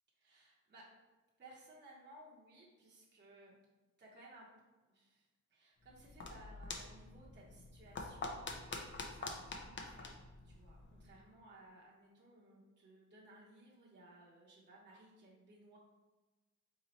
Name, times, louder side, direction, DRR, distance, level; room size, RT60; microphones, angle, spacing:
voice 1, 0.2-0.9 1.4-3.6 4.0-4.5 4.8-10.1 10.4-15.8, right 1 dB, 35° right, -5 dB, 0.8 m, -60 dB
sound 1, 5.8-11.2, left 3 dB, 40° left, 0.5 m, -47 dB
3.9 x 3.0 x 4.0 m, 1.2 s
wide cardioid pair, 150°, 30 cm